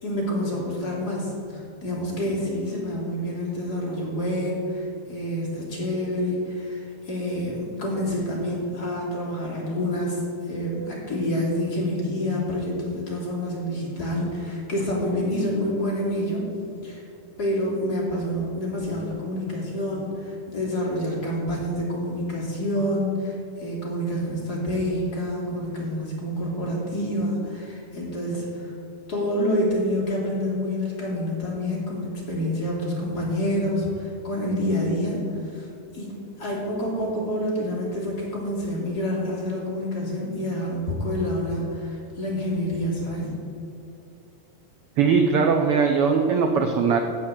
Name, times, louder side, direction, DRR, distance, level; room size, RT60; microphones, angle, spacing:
voice 1, 0.0-16.4 16.8-17.0 17.4-28.7 29.1-35.7 35.9-36.1 36.4-43.3, equal, 30° left, -4 dB, 3.2 m, -27 dB
voice 2, 45.0-47.0, right 5 dB, 70° right, 4 dB, 1.3 m, -20 dB
15.5 x 5.9 x 7.6 m, 2.7 s
omnidirectional pair, 3.5 m